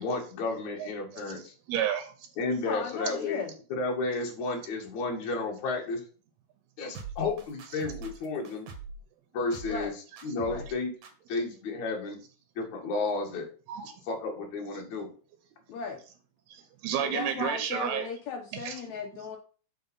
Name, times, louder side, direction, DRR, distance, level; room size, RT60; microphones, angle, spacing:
voice 1, 0.0-1.5 2.4-6.0 6.8-8.7 9.3-9.9 10.2-10.9 11.3-12.2 12.6-13.5 14.1-15.1, left 3 dB, 55° left, 0 dB, 3.0 m, -32 dB
voice 2, 1.7-2.3 13.7-13.9 16.5-18.1 18.6-18.8, right 9 dB, 85° right, 7 dB, 3.0 m, -31 dB
voice 3, 2.7-3.5 9.7-9.9 10.4-10.7 15.7-16.0 17.0-19.4, left 5 dB, 80° left, 3 dB, 1.6 m, -36 dB
sound 1, 6.9-9.0 9.5-9.9 10.2-10.7 11.0-11.1, right 4 dB, 60° right, 2.3 m, -43 dB
8.0 x 4.9 x 5.5 m, 0.39 s
omnidirectional pair, 4.5 m